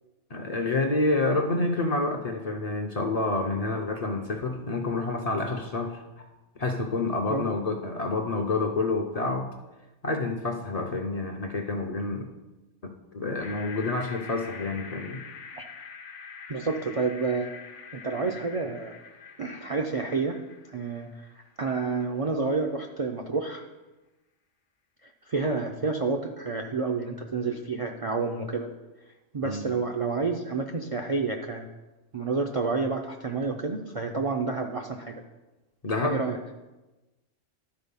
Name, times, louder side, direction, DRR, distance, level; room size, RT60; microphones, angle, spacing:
voice 1, 0.3-6.2 6.6-9.5 10.0-12.3 12.8-15.2 29.4-29.7 35.8-36.2, left 2 dB, 40° left, 3 dB, 0.6 m, -28 dB
sound 1, 13.4-21.6, left 6 dB, 85° left, 1.2 m, -45 dB
voice 2, 16.5-17.5 17.9-18.9 19.4-20.4 20.7-21.3 21.6-23.6 25.3-28.7 29.3-31.7 32.1-35.2 36.0-36.4, right 4 dB, 45° right, 3 dB, 0.4 m, -29 dB
11.5 x 4.4 x 5.4 m, 1.1 s
omnidirectional pair, 1.2 m